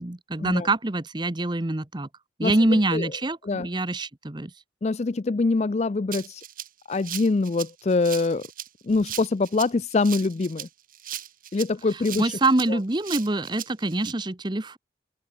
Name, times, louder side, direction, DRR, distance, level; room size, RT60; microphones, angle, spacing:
voice 1, 0.0-2.1 2.4-4.5 12.2-14.8, right 2 dB, 25° right, 0.9 m, -25 dB
voice 2, 2.4-3.1 3.4-3.7 4.8-6.4 6.9-8.5 8.8-10.7 11.5-12.4 12.7-12.8, left 3 dB, 35° left, 0.4 m, -24 dB
Rattle (instrument), 6.1-14.1, right 11 dB, 50° right, 4.9 m, -38 dB
open air
head